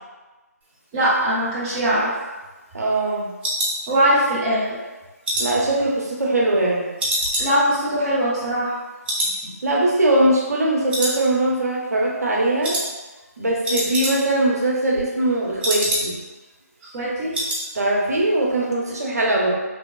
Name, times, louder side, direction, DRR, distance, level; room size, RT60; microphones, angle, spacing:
voice 1, 0.9-2.1 3.9-4.6 7.4-8.8 9.4-9.5 16.9-17.3, right 1 dB, 15° right, -10 dB, 0.5 m, -21 dB
sound 1, 1.7-4.5 4.8-6.6 7.0-8.8 9.0-9.4 9.7-9.8 10.2-10.6 10.9-11.7 12.0-12.2 12.6-12.9 13.2-13.3 13.5-14.5 14.8-16.4 16.7-16.8 17.0-17.7 17.9-18.2 18.5-18.6, right 1 dB, 35° right, 0.8 m, -27 dB
voice 2, 2.7-3.3 5.4-6.9 9.6-12.8 13.4-16.1 17.7-19.5, right 1 dB, 70° right, -3 dB, 0.7 m, -21 dB
3.2 x 2.2 x 2.2 m, 1.2 s
figure-of-eight pair, 155°, 9 cm